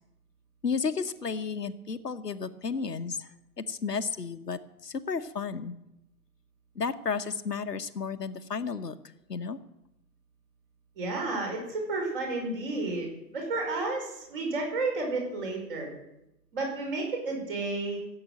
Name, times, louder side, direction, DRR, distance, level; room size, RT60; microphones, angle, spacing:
voice 1, 0.6-5.7 6.7-8.9 9.3-9.6, left 5 dB, 70° left, 9 dB, 1.2 m, -33 dB
voice 2, 11.0-15.9 16.5-18.0, right 3 dB, 35° right, 1 dB, 5.3 m, -31 dB
16.0 x 7.9 x 9.2 m, 0.87 s
figure-of-eight pair, 140°, 50 cm